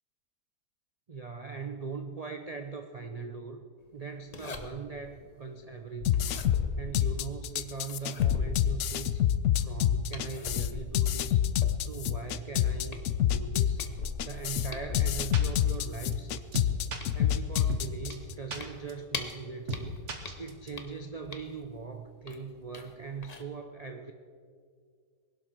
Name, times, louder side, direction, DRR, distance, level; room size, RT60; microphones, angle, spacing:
voice 1, 1.1-3.7 3.9-6.4 6.8-9.2 9.6-11.4 11.8-13.8 14.2-16.7 17.1-24.1, right 5 dB, 90° right, 6 dB, 0.3 m, -41 dB
sound 1, 4.3-5.0 6.1-7.4 7.9-9.2 10.1-12.1 12.5-12.6 12.9-15.9 16.3-19.4 19.7-21.7 22.3-22.9 23.2-23.4, left 3 dB, 30° left, 0.7 m, -41 dB
sound 2, 6.0-18.3, left 11 dB, 70° left, 0.7 m, -27 dB
sound 3, 14.9-15.0 15.3-15.4 15.7-15.8 16.1-16.2 16.5-17.0 17.3-17.4 17.7-17.8 18.1-18.2 18.5-18.6 18.9-19.0 19.3-19.4 19.7-19.8 20.1-20.7, right 4 dB, 45° right, 1.5 m, -35 dB
20.5 x 11.5 x 4.5 m, 2.1 s
omnidirectional pair, 1.8 m